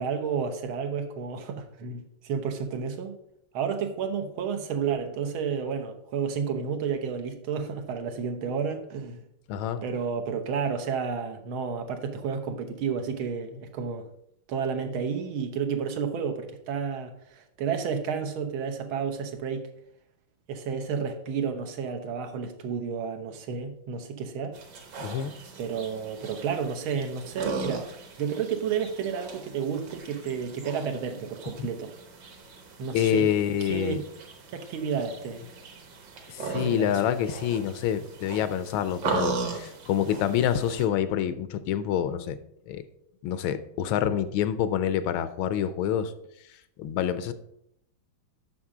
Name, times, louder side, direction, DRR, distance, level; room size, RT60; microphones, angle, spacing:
voice 1, 0.0-3.2 3.5-9.2 9.8-14.1 14.5-19.7 20.5-24.6 25.6-27.9 28.2-31.9 32.8-33.3 33.7-34.0 34.5-35.5 36.5-37.0, right 6 dB, 80° right, 1.8 m, -31 dB
voice 2, 9.5-9.8 25.0-25.3 31.6-31.7 32.9-34.0 36.3-42.4 42.7-42.8 43.2-46.1 46.8-47.3, left 9 dB, 80° left, 1.4 m, -27 dB
sound 1, 24.5-40.9, right 4 dB, 60° right, 1.7 m, -38 dB
7.2 x 6.0 x 4.8 m
omnidirectional pair, 2.2 m